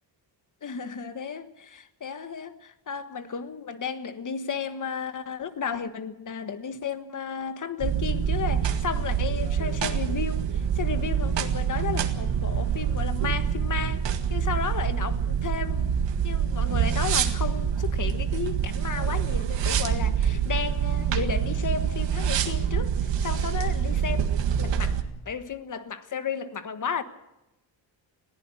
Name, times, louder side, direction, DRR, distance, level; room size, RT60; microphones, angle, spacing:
voice 1, 0.6-14.0 14.3-16.0 16.2-25.0 25.3-27.0, left 6 dB, 45° left, 1.4 m, -33 dB
sound 1, 7.8-25.0, right 8 dB, 75° right, 1.8 m, -26 dB
21.0 x 15.5 x 8.3 m
wide cardioid pair, 140°, 44 cm